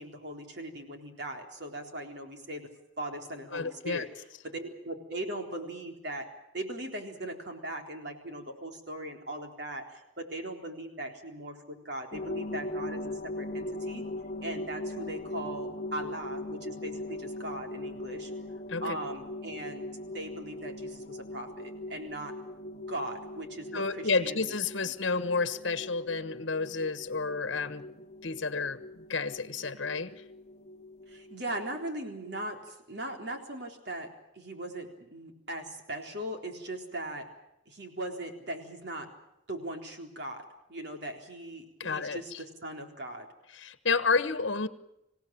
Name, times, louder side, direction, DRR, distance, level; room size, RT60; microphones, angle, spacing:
voice 1, 0.0-2.6 3.0-4.1 4.4-6.3 6.5-14.1 14.4-18.3 18.8-19.9 20.1-22.3 22.9-24.6 24.8-24.9 31.1-34.1 34.3-37.3 37.7-39.1 39.5-43.3, right 1 dB, 55° right, 4 dB, 3.8 m, -39 dB
voice 2, 3.5-4.0 18.7-19.0 23.7-27.8 28.2-30.2 41.8-42.4 43.6-44.7, left 4 dB, 65° left, 12 dB, 1.3 m, -30 dB
sound 1, 12.1-31.9, left 1 dB, 35° left, 0.9 m, -40 dB
26.5 x 16.5 x 8.9 m, 0.87 s
head